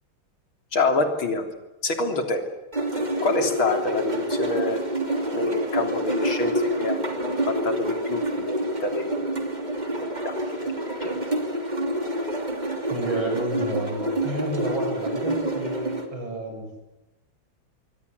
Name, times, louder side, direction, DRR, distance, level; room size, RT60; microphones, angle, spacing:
voice 1, 0.7-1.5 1.8-2.4 3.2-4.8 5.3-9.2 10.3-10.4 10.6-10.7 11.0-11.1, left 3 dB, 75° left, 5 dB, 4.1 m, -26 dB
sound 1, 2.7-16.1, right 1 dB, 20° right, 3.0 m, -27 dB
voice 2, 6.4-6.8 11.4-11.5 12.9-16.9, right 1 dB, 70° right, 3 dB, 8.5 m, -31 dB
26.5 x 22.5 x 8.2 m, 1.0 s
omnidirectional pair, 2.2 m